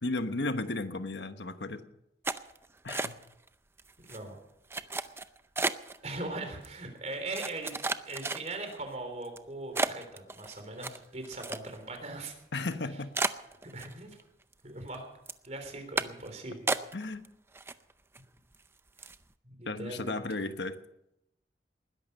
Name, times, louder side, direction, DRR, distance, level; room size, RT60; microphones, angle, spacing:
voice 1, 0.0-1.8 2.8-3.2 12.5-13.1 16.9-17.2 19.7-20.8, left 2 dB, 85° left, 9 dB, 1.2 m, -34 dB
sound 1, 2.2-3.5 3.8-4.2 4.7-6.0 6.6-6.7 7.3-8.7 9.2-9.4 9.7-12.0 12.3-12.4 12.7-12.8 13.1-14.2 14.5-15.0 15.3-15.5 16.0-16.3 16.7-17.3 17.5-18.2 18.5-18.7 19.0-19.2, right 3 dB, 15° right, 0.5 m, -33 dB
voice 2, 6.0-12.3 13.6-14.2 14.6-15.1 15.4-16.7 19.4-20.2, right 2 dB, 40° right, 5 dB, 3.6 m, -40 dB
20.5 x 11.5 x 5.6 m, 0.84 s
head